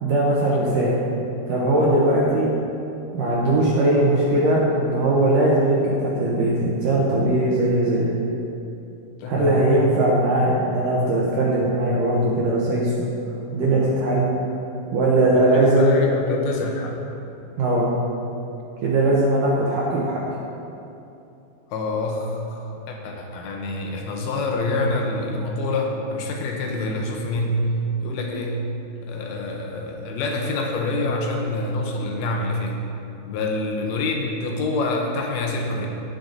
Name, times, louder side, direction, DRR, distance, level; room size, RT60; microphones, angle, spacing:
voice 1, 0.0-0.9 1.5-2.5 3.1-8.1 9.3-12.9 13.5-14.3 14.9-15.9 17.6-17.9 18.8-20.2, right 1 dB, 70° right, -5 dB, 2.1 m, -20 dB
voice 2, 9.2-9.7 15.3-17.0 21.7-27.7 28.0-28.7 29.0-32.8 33.2-35.9, left 2 dB, 70° left, 1 dB, 2.7 m, -26 dB
17.0 x 6.0 x 4.0 m, 2.8 s
omnidirectional pair, 5.0 m